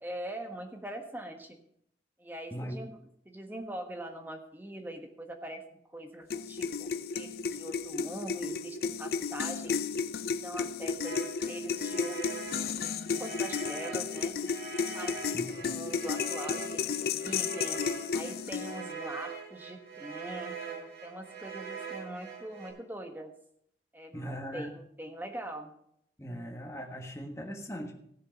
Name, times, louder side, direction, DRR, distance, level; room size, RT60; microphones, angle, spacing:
voice 1, 0.0-1.6 2.2-2.9 3.2-9.8 10.3-11.2 11.5-12.8 13.2-14.4 14.9-17.8 18.1-23.3 23.9-25.7, right 1 dB, 10° right, 4 dB, 1.3 m, -42 dB
sound 1, 6.3-18.9, left 6 dB, 55° left, 0.5 m, -33 dB
sound 2, 11.0-22.7, right 5 dB, 60° right, 3.8 m, -43 dB
voice 2, 15.1-15.7 24.1-24.7 26.2-27.9, equal, 15° left, 2 dB, 1.5 m, -40 dB
16.0 x 6.6 x 5.2 m, 0.70 s
head